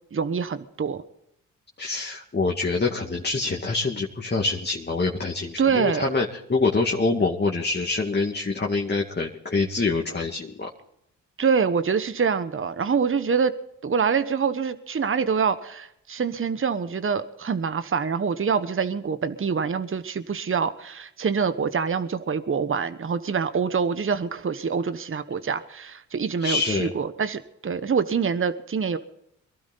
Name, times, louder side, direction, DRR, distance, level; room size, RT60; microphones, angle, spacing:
voice 1, 0.1-1.0 5.6-6.1 11.4-13.5 13.8-29.0, right 6 dB, 35° right, 11 dB, 1.2 m, -25 dB
voice 2, 1.8-10.7 26.4-26.9, left 3 dB, 30° left, 0 dB, 2.3 m, -25 dB
23.0 x 12.5 x 4.1 m, 0.77 s
supercardioid pair, 50°, 34 cm